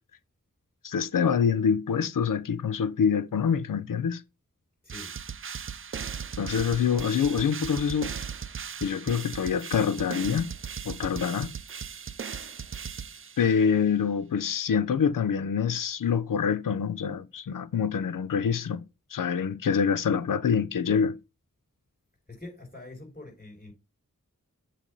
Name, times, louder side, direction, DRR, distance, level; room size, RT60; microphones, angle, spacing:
voice 1, 0.8-4.2 6.4-8.1 8.8-10.5 10.8-11.5 13.4-18.8 19.1-21.2, left 7 dB, 80° left, 0.7 m, -26 dB
sound 1, 4.9-13.7, right 7 dB, 40° right, 0.5 m, -38 dB
voice 2, 22.3-23.7, left 2 dB, 30° left, 5.0 m, -44 dB
7.5 x 3.5 x 5.4 m
wide cardioid pair, 90°, 32 cm